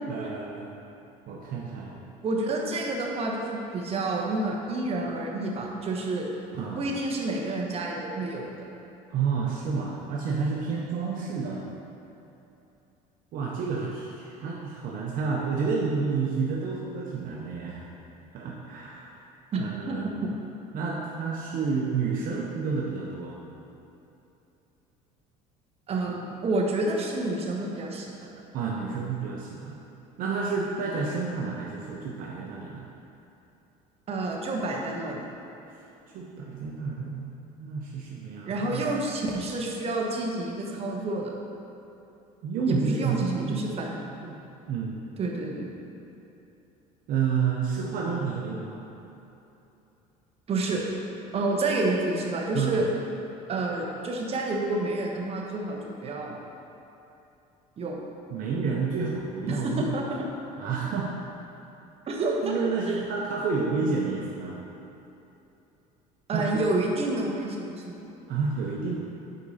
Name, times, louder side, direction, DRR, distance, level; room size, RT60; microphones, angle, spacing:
voice 1, 0.1-0.7 1.3-2.0 6.5-6.9 9.1-11.6 13.3-17.9 18.3-19.2 19.6-20.2 20.7-23.3 26.1-26.2 28.5-29.8 30.2-32.9 36.1-38.9 42.4-43.7 44.2-44.4 44.7-45.0 47.1-48.8 52.5-52.8 58.3-60.0 60.6-61.1 62.4-64.6 66.3-66.5 68.3-69.0, right 5 dB, 60° right, -3 dB, 0.9 m, -30 dB
voice 2, 2.2-6.3 6.7-8.7 19.5-20.0 20.2-20.3 25.9-28.3 34.1-35.2 38.5-41.3 42.7-44.0 45.2-45.7 50.5-50.8 51.3-52.9 53.5-56.4 57.8-58.0 59.5-60.2 62.1-62.5 62.9-63.0 66.3-68.1, right 2 dB, 40° right, -1 dB, 1.2 m, -29 dB
8.1 x 4.8 x 4.2 m, 2.9 s
supercardioid pair, 100°, 16 cm